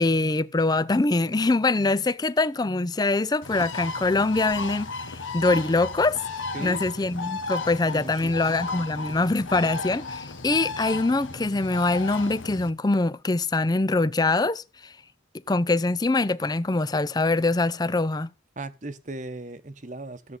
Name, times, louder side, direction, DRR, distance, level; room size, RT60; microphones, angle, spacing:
voice 1, 0.0-14.9 15.5-18.3, left 2 dB, 20° left, 0.4 m, -24 dB
Bird, 3.4-12.7, left 3 dB, 80° left, 1.3 m, -34 dB
voice 2, 7.9-8.3 18.6-20.4, right 2 dB, 40° right, 1.0 m, -38 dB
14.0 x 7.8 x 4.0 m
head